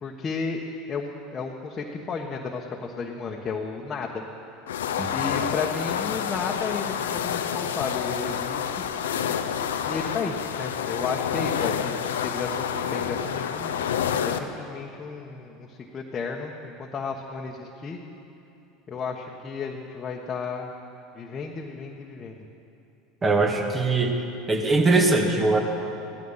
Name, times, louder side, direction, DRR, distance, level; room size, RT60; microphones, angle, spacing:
voice 1, 0.0-4.2 5.1-8.8 9.9-13.7 14.2-18.0 18.9-20.7 21.1-22.4, left 4 dB, 30° left, -1 dB, 1.4 m, -33 dB
sound 1, 4.7-14.4, left 8 dB, 85° left, 0.7 m, -28 dB
voice 2, 23.2-24.1 24.5-25.6, right 3 dB, 25° right, 3 dB, 2.1 m, -21 dB
16.5 x 13.0 x 5.7 m, 2.8 s
hypercardioid pair, 95°, 0 cm